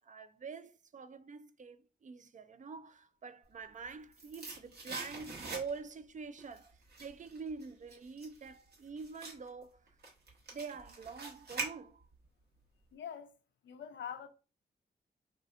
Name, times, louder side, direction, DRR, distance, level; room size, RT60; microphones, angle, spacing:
voice 1, 0.0-9.9 10.5-12.0, right 5 dB, 45° right, 0.4 m, -46 dB
sound 1, 3.6-6.0 6.4-12.3 12.6-12.7, right 3 dB, 60° right, 1.0 m, -45 dB
voice 2, 12.9-13.3 13.6-14.3, left 8 dB, 85° left, 0.5 m, -44 dB
3.2 x 2.7 x 2.5 m
cardioid pair, 60°, 19 cm